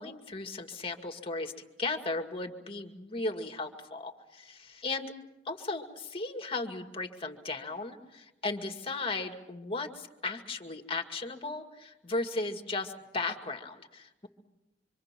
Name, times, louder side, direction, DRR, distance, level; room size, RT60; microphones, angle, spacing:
voice 1, 0.0-5.1 5.4-14.3, left 3 dB, 30° left, 5 dB, 2.1 m, -36 dB
26.0 x 25.5 x 6.0 m, 0.97 s
head